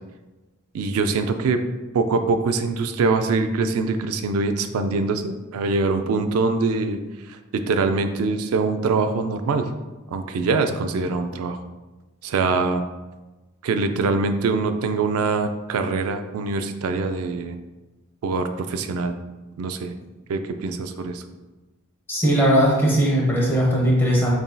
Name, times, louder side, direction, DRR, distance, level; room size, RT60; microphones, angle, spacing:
voice 1, 0.7-1.6 1.9-9.7 10.1-11.6 12.2-12.8 13.6-17.6 18.2-19.2 19.6-19.9 20.3-21.2, right 4 dB, 80° right, 7 dB, 0.3 m, -23 dB
voice 2, 22.1-24.3, equal, 10° left, -4 dB, 0.9 m, -19 dB
6.8 x 2.6 x 2.2 m, 1.1 s
head